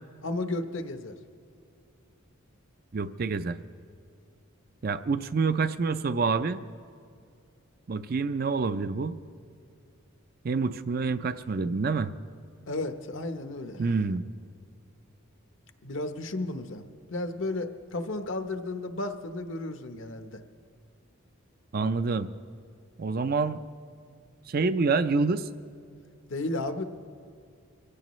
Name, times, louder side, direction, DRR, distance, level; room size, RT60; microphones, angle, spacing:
voice 1, 0.2-1.2 12.7-13.9 15.8-20.4 26.3-26.8, left 2 dB, 65° left, 8 dB, 0.9 m, -33 dB
voice 2, 2.9-3.6 4.8-6.6 7.9-9.2 10.4-12.1 13.8-14.2 21.7-22.3 23.0-23.6 24.5-25.5, right 4 dB, 45° right, 11 dB, 0.5 m, -27 dB
23.5 x 16.5 x 3.1 m, 2.3 s
head